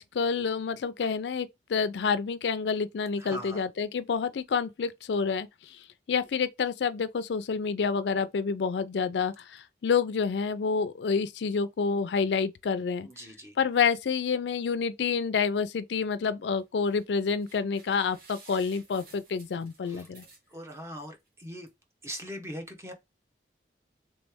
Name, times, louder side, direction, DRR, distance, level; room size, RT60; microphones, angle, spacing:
voice 1, 0.0-5.8 6.1-13.1 13.6-20.2, left 5 dB, 80° left, 0.4 m, -28 dB
voice 2, 3.2-3.7 13.0-13.5 19.8-20.1 20.5-21.7 22.0-22.9, equal, 15° right, 0.8 m, -41 dB
sound 1, 16.6-17.1 17.4-20.8 21.3-21.4 21.7-21.8, right 3 dB, 55° right, 1.3 m, -54 dB
3.2 x 3.1 x 3.4 m
head